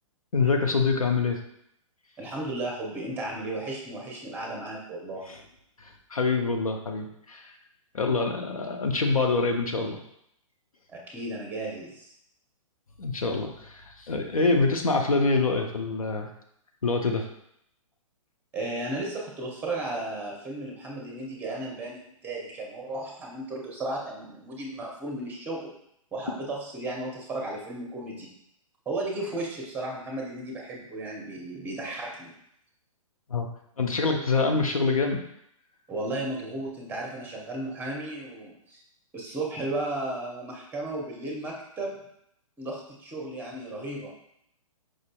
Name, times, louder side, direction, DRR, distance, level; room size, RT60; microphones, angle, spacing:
voice 1, 0.3-1.4 5.8-7.4 7.9-10.0 13.0-16.3 16.8-17.2 33.3-33.5 33.8-35.2, left 3 dB, 85° left, 3 dB, 0.6 m, -25 dB
voice 2, 2.2-5.2 10.9-12.1 18.5-25.7 26.1-28.3 28.9-32.4 35.9-38.8 39.1-42.0 42.6-44.1, right 2 dB, 10° right, -1 dB, 0.7 m, -34 dB
4.9 x 2.6 x 2.2 m, 0.74 s
figure-of-eight pair, 120°, 18 cm